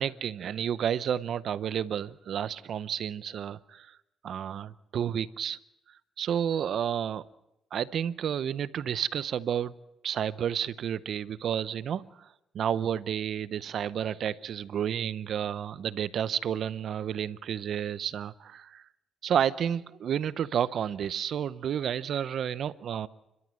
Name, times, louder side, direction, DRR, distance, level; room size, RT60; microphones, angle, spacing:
voice 1, 0.0-3.9 4.2-5.6 6.2-7.2 7.7-9.7 10.0-12.1 12.5-18.8 19.2-23.1, right 9 dB, 65° right, 17 dB, 0.7 m, -31 dB
29.5 x 13.0 x 7.7 m, 0.91 s
cardioid pair, 90°, 0 cm